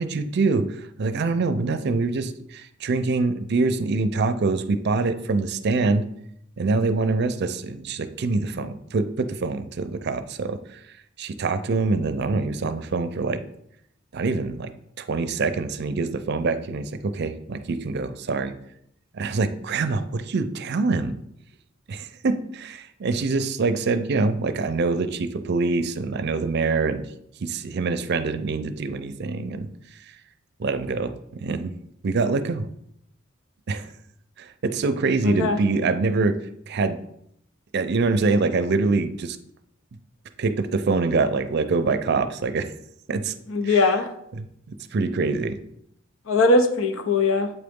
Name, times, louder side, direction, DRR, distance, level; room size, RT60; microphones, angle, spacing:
voice 1, 0.0-6.0 6.6-10.8 11.2-13.4 14.1-14.7 15.0-18.5 19.1-21.1 21.9-27.1 27.4-29.7 29.9-30.0 30.6-31.7 32.0-32.6 33.7-33.9 34.4-36.4 36.7-37.0 37.7-39.4 40.4-42.7 43.1-43.3 43.6-43.9 44.4-45.6, right 3 dB, 55° right, 10 dB, 0.5 m, -25 dB
voice 2, 35.3-35.6 43.5-44.1 46.3-47.5, left 3 dB, 85° left, 7 dB, 0.7 m, -20 dB
8.0 x 3.8 x 3.6 m, 0.75 s
head